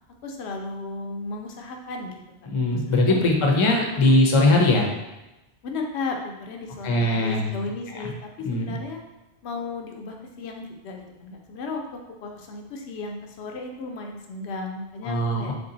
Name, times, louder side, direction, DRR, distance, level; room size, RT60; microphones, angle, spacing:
voice 1, 0.2-2.2 2.7-3.2 3.6-4.1 5.6-9.0 9.4-15.5, left 3 dB, 90° left, 2 dB, 0.9 m, -35 dB
voice 2, 2.5-4.9 6.8-7.5 8.4-8.8 15.0-15.5, left 2 dB, 35° left, 0 dB, 0.5 m, -20 dB
3.3 x 2.7 x 3.8 m, 1.0 s
omnidirectional pair, 1.1 m